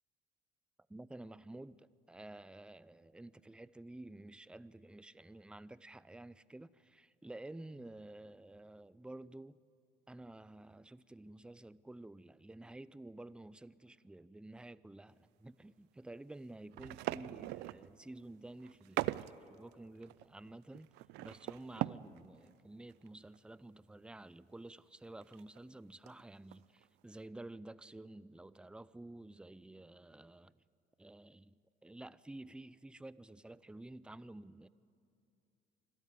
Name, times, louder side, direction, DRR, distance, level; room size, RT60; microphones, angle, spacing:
voice 1, 0.9-9.6 10.1-20.9 21.2-30.5 31.0-34.7, right 2 dB, 5° right, 0.4 m, -51 dB
sound 1, 16.7-17.9 18.6-19.4 19.7-19.8 20.0-22.2 22.5-22.6 22.9-23.1 23.3-23.4 25.0-25.6 26.1-26.2 26.5-26.8, right 18 dB, 90° right, 0.4 m, -40 dB
25.5 x 13.0 x 9.4 m
cardioid pair, 110°, 17 cm